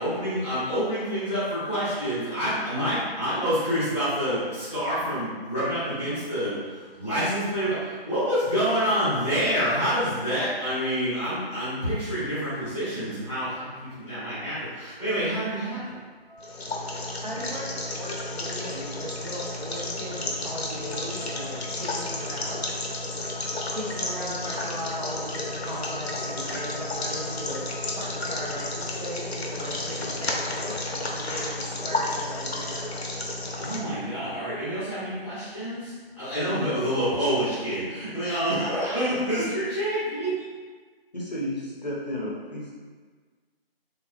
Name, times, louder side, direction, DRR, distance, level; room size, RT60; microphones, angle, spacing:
voice 1, 0.0-15.9 33.6-40.4, equal, 5° left, -17 dB, 0.9 m, -27 dB
sound 1, 16.3-28.7, left 1 dB, 75° right, 1.0 m, -45 dB
sound 2, 16.4-33.8, left 2 dB, 90° left, 0.7 m, -32 dB
voice 2, 17.2-22.7 23.7-27.6 28.0-32.9, equal, 45° right, -6 dB, 0.7 m, -37 dB
voice 3, 36.4-36.9 39.4-39.5 41.1-42.8, left 1 dB, 45° left, -5 dB, 0.7 m, -33 dB
3.4 x 3.2 x 2.3 m, 1.5 s
figure-of-eight pair, 170°, 31 cm